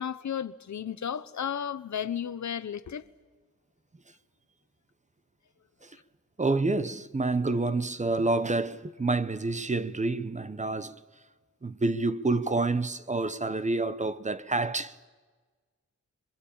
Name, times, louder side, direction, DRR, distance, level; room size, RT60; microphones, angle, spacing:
voice 1, 0.0-3.0, left 8 dB, 65° left, 1.0 m, -33 dB
voice 2, 6.4-11.0 11.6-15.1, right 3 dB, 25° right, 0.8 m, -28 dB
27.0 x 23.5 x 8.7 m
wide cardioid pair, 135°, 31 cm